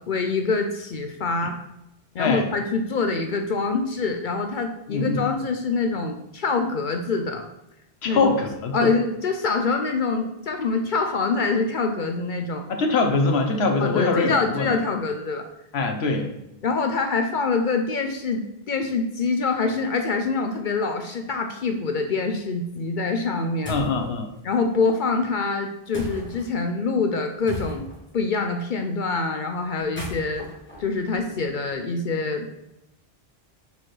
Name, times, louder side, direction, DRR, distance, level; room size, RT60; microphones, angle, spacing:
voice 1, 0.1-1.6 2.1-7.4 8.0-8.3 8.7-12.7 13.8-15.5 16.6-23.8 24.4-27.9 28.1-30.5 30.8-32.5, left 4 dB, 60° left, 5 dB, 0.7 m, -25 dB
voice 2, 4.9-5.3 8.0-8.9 12.7-14.8 15.7-16.3 23.7-24.3, left 3 dB, 85° left, 5 dB, 1.1 m, -23 dB
sound 1, 23.6-24.0 25.9-26.5 27.5-28.1 29.8-31.7, left 3 dB, 10° left, 1.4 m, -37 dB
6.9 x 4.3 x 3.2 m, 0.88 s
omnidirectional pair, 1.0 m